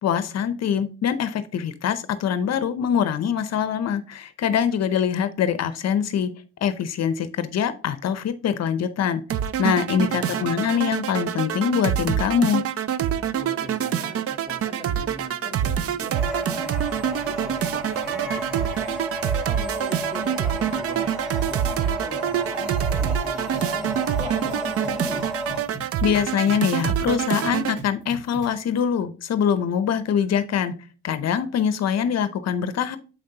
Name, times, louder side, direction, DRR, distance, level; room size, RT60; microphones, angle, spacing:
voice 1, 0.0-6.3 6.6-9.2 9.6-12.6 26.0-30.7 31.0-33.0, left 8 dB, 60° left, 11 dB, 0.7 m, -23 dB
sound 1, 9.3-27.8, right 9 dB, 50° right, 0.5 m, -26 dB
voice 2, 10.0-10.6 13.3-19.0 19.4-21.2 21.5-25.3, equal, 20° right, 3 dB, 1.9 m, -40 dB
sound 2, 16.1-25.6, right 1 dB, ahead, 1.3 m, -32 dB
sound 3, 23.5-28.6, right 1 dB, 80° right, 1.8 m, -38 dB
7.2 x 5.1 x 2.8 m, 0.36 s
cardioid pair, 90°, 30 cm